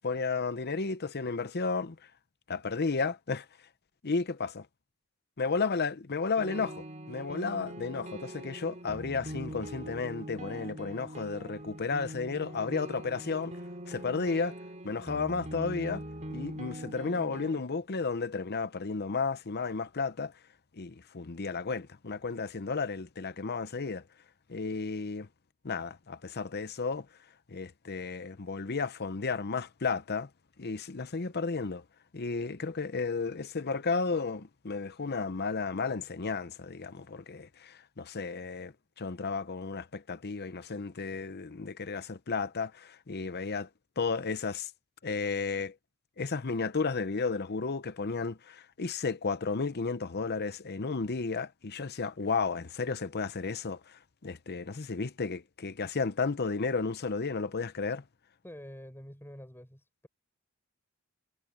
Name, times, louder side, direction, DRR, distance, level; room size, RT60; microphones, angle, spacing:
voice 1, 0.0-2.0 2.5-3.5 4.0-4.7 5.4-13.5 13.9-14.6 14.8-16.0 16.3-20.3 20.8-24.0 24.5-25.3 25.6-27.1 27.5-30.3 30.6-31.8 32.1-38.7 39.0-43.7 44.0-44.7 45.0-45.7 46.2-53.8 54.2-58.0, left 4 dB, 50° left, 0.8 m, -33 dB
sound 1, 6.4-17.6, right 1 dB, 35° right, 2.7 m, -42 dB
voice 2, 58.4-60.1, equal, 10° left, 6.1 m, -47 dB
head